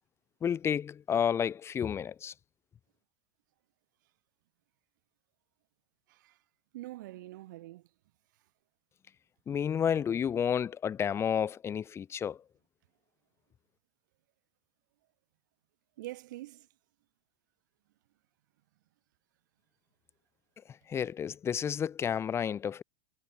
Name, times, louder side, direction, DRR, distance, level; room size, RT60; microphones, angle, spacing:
voice 1, 0.4-2.3 9.5-12.4 20.7-22.8, left 8 dB, 25° left, 1.8 m, -31 dB
voice 2, 6.7-7.8 16.0-16.7, right 17 dB, 75° right, 6.0 m, -44 dB
supercardioid pair, 125°, 10 cm